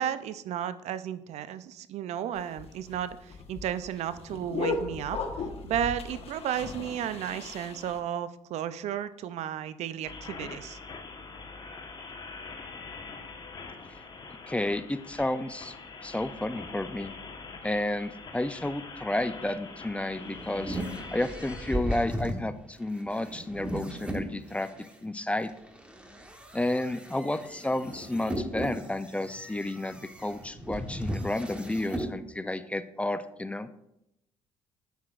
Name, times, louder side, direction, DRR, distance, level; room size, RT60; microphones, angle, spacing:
voice 1, 0.0-5.2 5.6-10.8, right 10 dB, 70° right, 14 dB, 0.5 m, -33 dB
sound 1, 2.4-8.0, left 4 dB, 55° left, 1.1 m, -36 dB
sound 2, 10.1-21.8, left 4 dB, 40° left, 1.2 m, -44 dB
voice 2, 14.5-15.7 16.0-17.1 17.6-20.8 21.1-24.7 25.0-25.5 26.5-33.7, left 1 dB, 10° left, 12 dB, 0.5 m, -31 dB
sound 3, 19.9-24.9 25.5-32.1, equal, 10° right, 1.2 m, -37 dB
9.5 x 7.9 x 2.4 m, 0.84 s
supercardioid pair, 65°, 12 cm